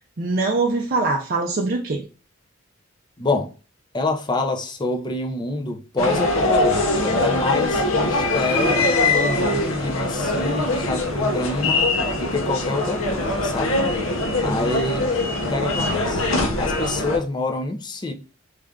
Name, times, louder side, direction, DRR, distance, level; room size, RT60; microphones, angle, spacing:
voice 1, 0.2-2.0 14.4-14.6, right 3 dB, 45° right, 0.5 m, -23 dB
voice 2, 3.2-3.5 3.9-13.8 14.4-15.1 15.5-16.2 16.6-18.1, left 2 dB, 20° left, 0.4 m, -26 dB
sound 1, 6.0-17.2, left 2 dB, 90° left, 0.8 m, -22 dB
3.2 x 2.4 x 3.5 m
head